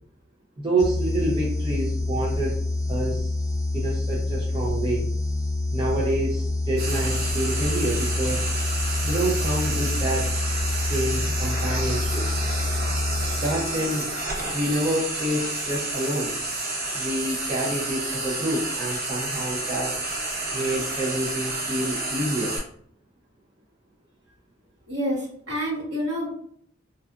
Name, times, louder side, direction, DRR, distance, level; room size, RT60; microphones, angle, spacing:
voice 1, 0.6-2.6 2.9-3.3 3.7-5.1 5.7-8.5 9.0-10.3 10.9-12.3 13.4-14.1 14.5-16.3 16.9-19.9 20.5-22.5, right 1 dB, 25° right, -4 dB, 0.4 m, -27 dB
sound 1, 0.8-13.9, left 2 dB, 35° left, 0.6 m, -27 dB
Frying (food), 6.8-22.6, right 2 dB, 50° right, 0.8 m, -30 dB
voice 2, 24.9-26.3, equal, 65° right, -6 dB, 1.3 m, -28 dB
2.6 x 2.3 x 2.3 m, 0.62 s
head